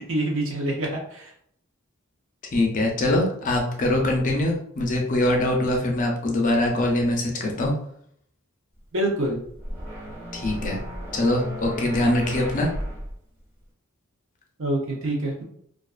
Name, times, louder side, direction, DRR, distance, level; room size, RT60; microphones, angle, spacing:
voice 1, 0.0-1.3 8.9-9.4 14.6-15.4, right 1 dB, 65° right, -1 dB, 0.7 m, -26 dB
voice 2, 2.5-7.7 10.3-10.8 11.1-12.7, left 1 dB, 40° left, 0 dB, 0.5 m, -23 dB
sound 1, 9.2-13.2, equal, 15° right, 1.2 m, -35 dB
2.4 x 2.3 x 2.4 m, 0.67 s
head